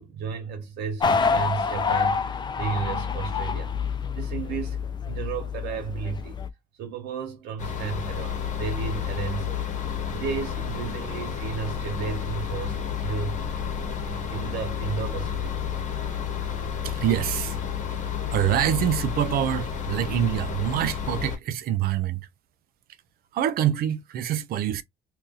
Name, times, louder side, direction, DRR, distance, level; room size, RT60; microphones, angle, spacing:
voice 1, 0.0-3.8 4.1-6.4 6.8-9.7 10.1-13.4 14.0-15.6, right 6 dB, 85° right, 1.3 m, -33 dB
sound 1, 1.0-6.5, left 5 dB, 25° left, 0.5 m, -27 dB
sound 2, 7.6-21.4, left 8 dB, 45° left, 1.0 m, -31 dB
voice 2, 16.8-17.6 18.3-22.2 23.3-24.8, right 11 dB, 65° right, 0.5 m, -25 dB
2.7 x 2.6 x 3.8 m
cardioid pair, 110°, 17 cm